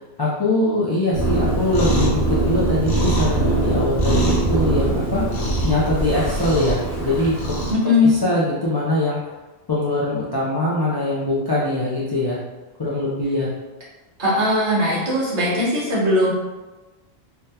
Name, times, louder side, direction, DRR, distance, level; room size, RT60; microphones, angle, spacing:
voice 1, 0.2-5.2 5.6-7.5 8.0-9.2 9.7-12.4 12.8-13.5, left 2 dB, 40° left, -7 dB, 0.3 m, -22 dB
Cat, 1.1-7.7, right 2 dB, 70° left, 1.1 m, -21 dB
voice 2, 7.7-8.5 14.2-16.3, left 2 dB, 50° right, -7 dB, 1.1 m, -19 dB
3.4 x 2.2 x 2.8 m, 1.2 s
omnidirectional pair, 1.1 m